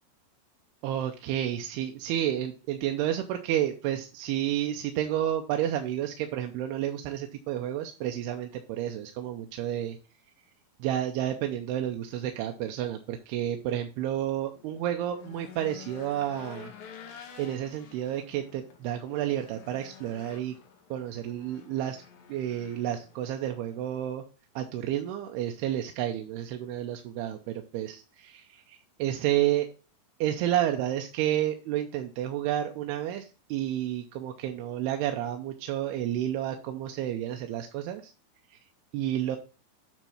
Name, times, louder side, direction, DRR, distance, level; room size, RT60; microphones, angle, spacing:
voice 1, 0.8-10.0 10.8-16.7 17.4-20.6 20.9-22.0 22.3-24.2 24.6-29.7 30.2-38.1 38.9-39.4, right 11 dB, 80° right, 5 dB, 2.6 m, -30 dB
Race car auto racing / Engine, 14.0-24.1, left 7 dB, 65° left, 2.7 m, -50 dB
9.1 x 3.6 x 5.6 m, 0.34 s
omnidirectional pair, 4.7 m